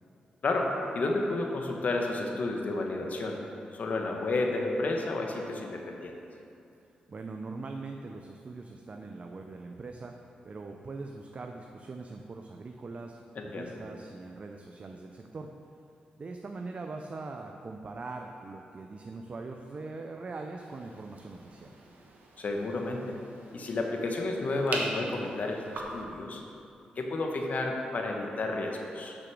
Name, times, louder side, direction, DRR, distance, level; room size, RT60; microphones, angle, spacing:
voice 1, 0.4-3.4 3.7-6.1 13.3-13.7 22.4-23.2 23.5-25.6 25.9-26.4 27.0-29.2, left 2 dB, 60° left, 1 dB, 1.1 m, -31 dB
voice 2, 7.1-10.1 10.4-15.5 16.2-21.7, right 3 dB, 45° right, 3 dB, 0.6 m, -42 dB
sound 1, 20.6-26.0, right 2 dB, 75° right, 1.2 m, -42 dB
6.3 x 6.2 x 6.1 m, 2.6 s
cardioid pair, 65°, 3 cm